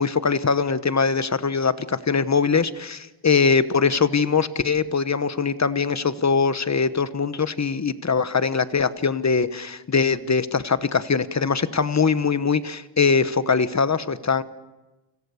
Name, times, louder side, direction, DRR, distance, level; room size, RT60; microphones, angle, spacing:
voice 1, 0.0-14.4, left 5 dB, 35° left, 13 dB, 1.1 m, -22 dB
29.5 x 26.5 x 7.1 m, 1.1 s
wide cardioid pair, 155°, 48 cm